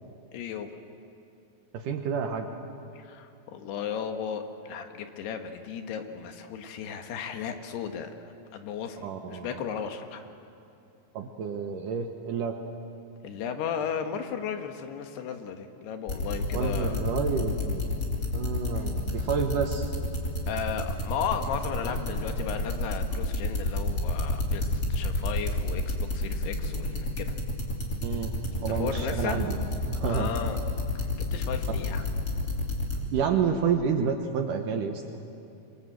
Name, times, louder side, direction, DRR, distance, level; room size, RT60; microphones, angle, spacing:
voice 1, 0.3-0.7 2.9-10.2 13.2-17.0 18.7-18.9 20.5-27.4 28.7-29.5 30.0-30.6 30.9-32.1, left 7 dB, 80° left, 6 dB, 3.4 m, -35 dB
voice 2, 1.7-2.5 9.0-9.5 11.1-12.6 16.5-17.8 18.3-19.9 28.0-28.3 28.6-29.6 29.8-30.3 33.1-35.0, right 6 dB, 65° right, 5 dB, 2.3 m, -29 dB
sound 1, 16.1-33.0, left 2 dB, 25° left, 3.1 m, -29 dB
26.0 x 22.5 x 8.0 m, 2.6 s
omnidirectional pair, 4.7 m